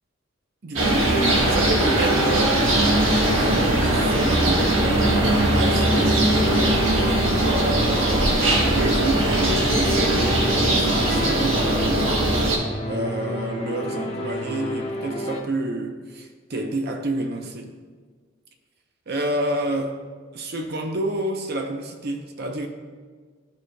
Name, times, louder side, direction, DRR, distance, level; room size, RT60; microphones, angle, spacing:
voice 1, 0.6-2.7 3.3-6.8 7.5-8.3 8.6-12.3 12.9-17.7 19.1-20.0 20.3-22.7, right 2 dB, 55° right, 4 dB, 0.7 m, -29 dB
sound 1, 0.7-12.6, right 1 dB, 80° right, 1.3 m, -20 dB
sound 2, 1.1-15.4, left 1 dB, 30° left, 1.1 m, -31 dB
13.5 x 4.7 x 2.2 m, 1.5 s
head